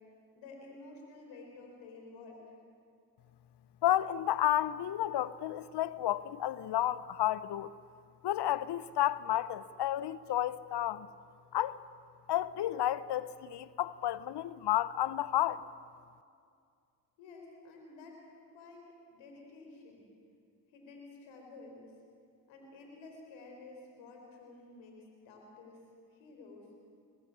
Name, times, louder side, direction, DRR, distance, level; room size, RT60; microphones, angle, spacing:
voice 1, 0.3-2.6 17.2-18.2 18.5-20.1 20.7-21.8 22.5-25.8 26.1-26.7, left 3 dB, 80° left, 4.3 m, -51 dB
voice 2, 3.8-7.7 8.2-11.1 11.5-11.8 12.3-15.7, left 12 dB, 60° left, 0.8 m, -31 dB
21.0 x 15.0 x 9.7 m
hypercardioid pair, 40°, 45 cm